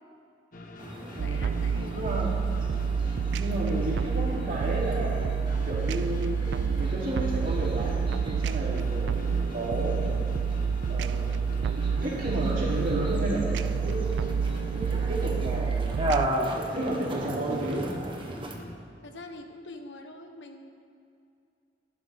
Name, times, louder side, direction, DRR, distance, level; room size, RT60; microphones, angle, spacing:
sound 1, 0.5-18.7, left 1 dB, 50° left, 1.2 m, -44 dB
sound 2, 0.8-18.5, right 1 dB, 30° right, 1.2 m, -37 dB
voice 1, 1.2-2.0 19.0-20.7, left 2 dB, 90° left, 5 dB, 1.2 m, -44 dB
sound 3, 1.2-16.3, right 6 dB, 75° right, 0.3 m, -28 dB
voice 2, 1.9-2.3 3.3-5.4 5.6-6.4 6.8-8.0 8.2-10.4 10.9-11.4 11.8-14.3 14.7-16.2 16.4-17.8, right 1 dB, 50° right, -5 dB, 3.1 m, -32 dB
16.0 x 11.5 x 3.6 m, 2.5 s
head